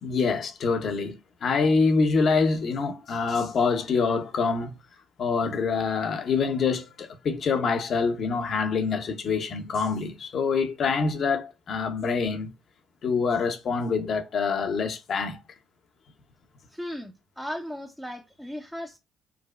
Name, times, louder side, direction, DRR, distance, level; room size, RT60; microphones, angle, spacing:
voice 1, 0.0-4.7 5.2-12.5 13.0-15.4, left 4 dB, 55° left, 0.7 m, -25 dB
voice 2, 16.7-19.0, equal, ahead, 0.5 m, -36 dB
4.8 x 2.0 x 2.3 m
hypercardioid pair, 60°, 0 cm